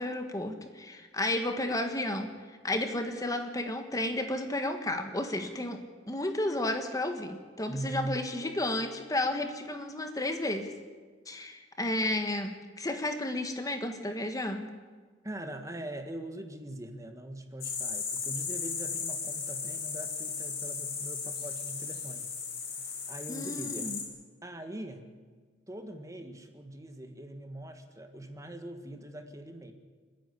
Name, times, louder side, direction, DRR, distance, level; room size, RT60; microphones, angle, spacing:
voice 1, 0.0-2.3 2.6-5.8 6.1-10.7 11.3-14.7 23.3-24.0, left 1 dB, 20° left, 6 dB, 1.5 m, -32 dB
voice 2, 7.7-8.3 15.2-22.3 22.8-24.0 24.4-25.0 25.7-29.7, right 1 dB, 15° right, 6 dB, 1.7 m, -42 dB
sound 1, 17.6-24.0, left 5 dB, 55° left, 5.0 m, -36 dB
29.5 x 10.5 x 10.0 m, 1.5 s
head